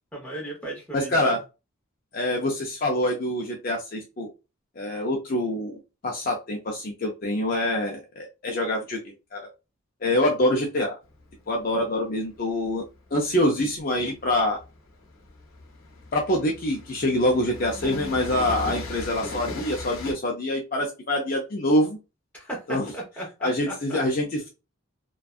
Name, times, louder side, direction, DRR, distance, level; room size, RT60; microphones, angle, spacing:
voice 1, 0.1-1.4 22.3-24.0, right 1 dB, 5° left, -3 dB, 0.9 m, -36 dB
voice 2, 0.9-1.4 2.1-4.3 4.8-9.0 9.3-9.5 10.0-11.0 11.5-12.8 13.1-14.6 16.1-22.0 22.7-22.9 23.4-24.5, left 1 dB, 45° left, 0 dB, 0.4 m, -25 dB
Train, 11.0-20.1, left 2 dB, 85° left, 0.8 m, -38 dB
2.6 x 2.2 x 2.3 m, 0.28 s
head